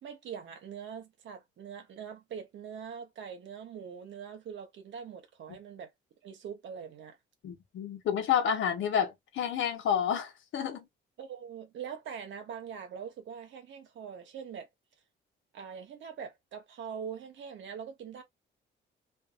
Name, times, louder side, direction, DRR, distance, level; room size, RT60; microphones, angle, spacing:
voice 1, 0.0-5.9 6.2-7.2 11.2-14.7 15.5-18.2, right 7 dB, 70° right, 1.0 m, -43 dB
voice 2, 7.4-10.8, left 8 dB, 75° left, 0.9 m, -30 dB
2.7 x 2.5 x 2.4 m
cardioid pair, 90°, 20 cm